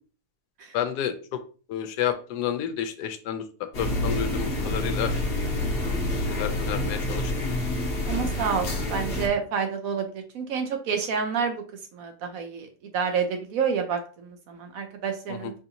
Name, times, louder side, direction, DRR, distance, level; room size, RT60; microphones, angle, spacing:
voice 1, 0.7-1.4 1.7-3.4 3.8-5.1 6.3-7.3 15.3-15.5, left 9 dB, 85° left, 9 dB, 1.2 m, -30 dB
sound 1, 3.7-9.3, left 1 dB, 45° left, 1.0 m, -28 dB
voice 2, 8.1-11.6 11.9-15.5, right 6 dB, 70° right, 5 dB, 1.0 m, -29 dB
4.8 x 2.6 x 2.8 m, 0.37 s
omnidirectional pair, 1.7 m